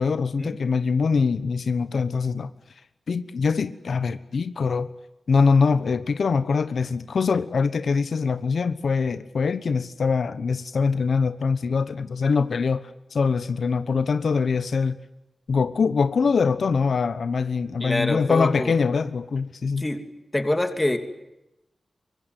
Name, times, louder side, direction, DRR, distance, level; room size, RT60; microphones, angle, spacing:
voice 1, 0.0-2.5 3.1-4.9 5.3-12.8 13.1-15.0 15.5-19.8, left 5 dB, 80° left, 1.1 m, -23 dB
voice 2, 17.8-18.7 19.8-20.0 20.3-21.0, left 1 dB, 15° left, 2.9 m, -25 dB
24.5 x 23.0 x 9.3 m
wide cardioid pair, 135°, 0 cm